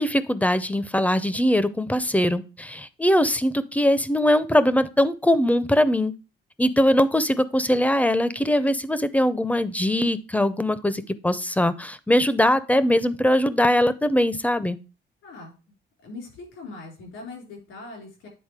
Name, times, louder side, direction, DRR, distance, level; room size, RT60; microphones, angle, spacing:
voice 1, 0.0-6.1 6.6-14.8, left 1 dB, 5° left, 14 dB, 0.6 m, -21 dB
voice 2, 15.2-15.5 16.0-18.3, left 3 dB, 90° left, 0 dB, 4.2 m, -40 dB
9.1 x 4.0 x 4.8 m, 0.32 s
cardioid pair, 90°, 20 cm